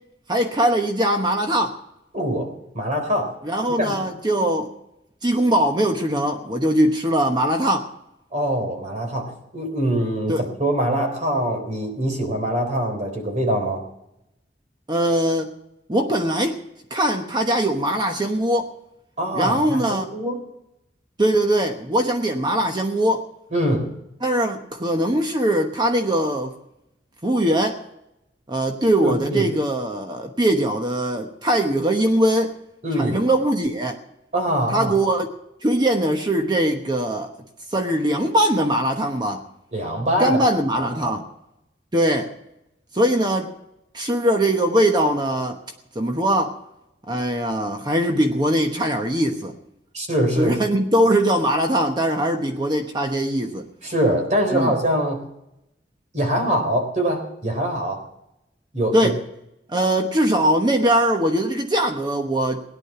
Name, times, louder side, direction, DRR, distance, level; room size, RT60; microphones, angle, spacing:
voice 1, 0.3-1.7 3.4-4.7 5.2-7.9 10.3-10.4 14.9-15.5 15.9-16.6 16.9-18.7 19.3-20.1 21.2-23.2 24.2-26.5 27.2-27.8 28.5-32.5 33.0-34.0 34.7-35.3 35.6-37.3 37.7-39.4 40.2-41.3 41.9-42.3 42.9-43.5 43.9-45.6 45.9-46.6 47.1-49.5 50.4-53.7 54.5-54.7 58.9-59.2 59.7-62.6, right 1 dB, 25° right, 4 dB, 1.1 m, -21 dB
voice 2, 2.1-3.3 3.8-4.0 4.4-4.5 8.3-13.8 19.2-20.4 23.5-23.9 29.0-29.5 32.8-33.2 34.3-35.0 39.7-40.4 40.8-41.2 49.9-50.5 53.8-55.3 56.1-58.1 58.7-59.1, right 1 dB, 40° right, 4 dB, 3.7 m, -23 dB
18.0 x 10.5 x 5.9 m, 0.84 s
head